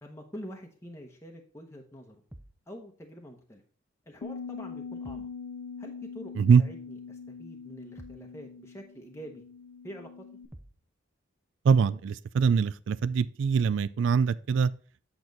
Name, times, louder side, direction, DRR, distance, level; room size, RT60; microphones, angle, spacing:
voice 1, 0.0-2.2 2.7-3.6 4.1-5.3 5.8-9.4 9.8-10.1, equal, 15° left, 0.9 m, -46 dB
sound 1, 2.3-2.7 5.0-5.4 8.0-8.3 10.5-10.9, right 1 dB, 10° right, 0.6 m, -49 dB
Bass guitar, 4.2-10.5, left 5 dB, 60° left, 0.5 m, -42 dB
voice 2, 11.7-14.7, right 6 dB, 65° right, 0.3 m, -23 dB
8.5 x 6.1 x 4.0 m
head